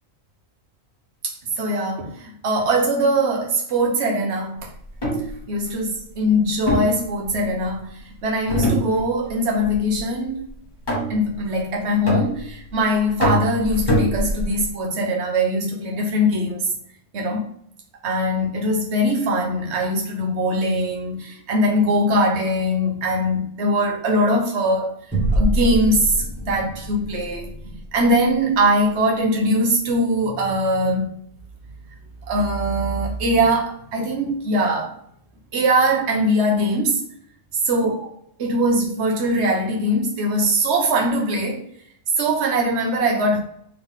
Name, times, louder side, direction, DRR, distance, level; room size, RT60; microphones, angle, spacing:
voice 1, 1.2-4.7 5.5-10.5 11.1-16.7 17.1-17.5 18.0-27.5 27.9-31.1 32.3-34.9 35.5-37.0 37.6-38.0 38.4-41.6 42.2-43.4, equal, 60° right, 1.2 m, -21 dB
sound 1, 4.8-5.3 6.7-7.7 8.5-9.3 9.6-10.0 10.9-11.4 12.1-12.7 13.2-14.7, equal, 35° left, 2.1 m, -23 dB
sound 2, 25.1-29.9, right 1 dB, 10° left, 1.8 m, -27 dB
3.8 x 3.7 x 3.6 m
omnidirectional pair, 1.4 m